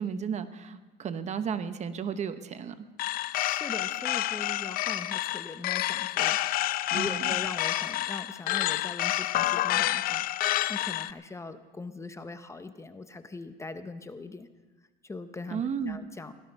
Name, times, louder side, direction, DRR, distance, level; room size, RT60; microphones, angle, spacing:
voice 1, 0.0-2.9 6.9-7.3 15.5-16.0, right 7 dB, 35° right, 11 dB, 1.0 m, -33 dB
sound 1, 3.0-11.1, left 15 dB, 45° left, 0.5 m, -29 dB
voice 2, 3.3-6.4 6.9-10.2 10.7-14.5 15.0-16.3, left 3 dB, 15° left, 10 dB, 0.8 m, -41 dB
17.5 x 12.5 x 5.4 m, 1.2 s
supercardioid pair, 110°, 20 cm